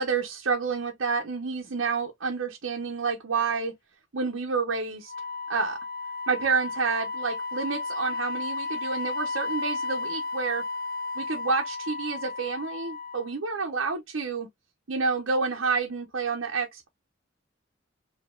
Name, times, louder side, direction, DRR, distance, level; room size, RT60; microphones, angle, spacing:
voice 1, 0.0-3.7 4.1-5.1 5.5-5.8 6.3-10.6 11.1-14.5 14.9-16.9, right 4 dB, 80° right, 0.8 m, -29 dB
Wind instrument woodwind instrument, 5.1-13.3, left 3 dB, 45° left, 0.4 m, -33 dB
4.8 x 2.9 x 2.3 m
head